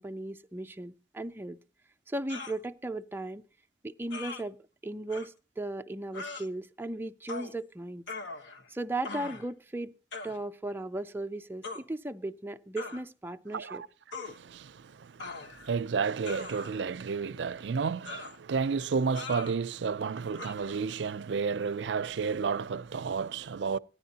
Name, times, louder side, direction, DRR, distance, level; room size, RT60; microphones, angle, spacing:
voice 1, 0.0-1.6 2.1-3.4 3.8-4.6 4.8-8.1 8.7-9.9 10.2-13.8, right 2 dB, 10° right, 0.4 m, -36 dB
sound 1, 2.3-2.6 4.1-4.4 5.1-5.3 6.1-6.5 7.3-7.5 8.1-8.7 9.0-9.5 10.1-10.4 11.6-11.8 12.8-13.0 14.1-14.4 15.2-15.7 16.2-16.9 18.0-18.4 19.1-19.5 20.4-20.5, left 3 dB, 85° left, 1.1 m, -40 dB
voice 2, 13.5-13.9 14.2-23.8, right 5 dB, 75° right, 0.4 m, -32 dB
15.0 x 10.0 x 2.8 m
head